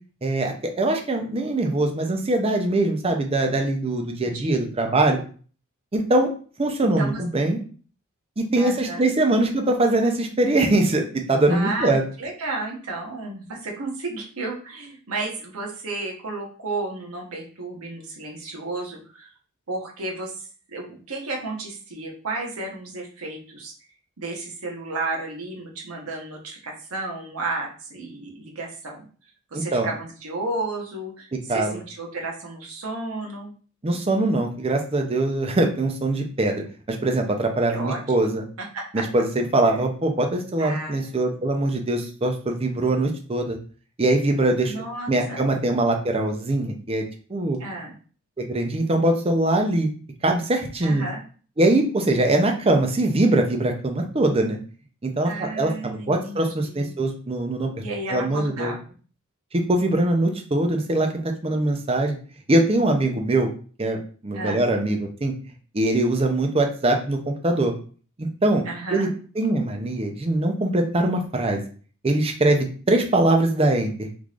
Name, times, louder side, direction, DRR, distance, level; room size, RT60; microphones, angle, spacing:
voice 1, 0.2-5.2 5.9-6.3 6.6-7.6 8.4-12.0 29.5-29.9 31.5-31.8 33.8-38.5 38.9-43.6 44.0-44.7 45.1-47.0 47.3-47.6 48.4-49.9 50.2-51.0 51.6-54.6 55.0-57.7 58.1-58.7 59.5-62.2 62.5-63.5 63.8-64.0 64.2-65.3 65.7-67.7 68.2-68.6 68.9-69.1 69.4-71.6 72.0-74.1, right 2 dB, 25° right, 3 dB, 0.5 m, -22 dB
voice 2, 4.2-4.7 6.8-7.2 8.6-9.1 11.5-19.3 19.7-23.7 24.2-29.1 29.5-33.5 37.7-38.0 38.7-39.0 40.6-41.4 44.7-45.5 47.6-47.9 50.8-51.2 55.2-56.9 57.8-58.8 64.3-64.6 68.6-69.1, right 2 dB, 75° right, 0 dB, 1.1 m, -32 dB
3.7 x 3.1 x 2.4 m, 0.41 s
head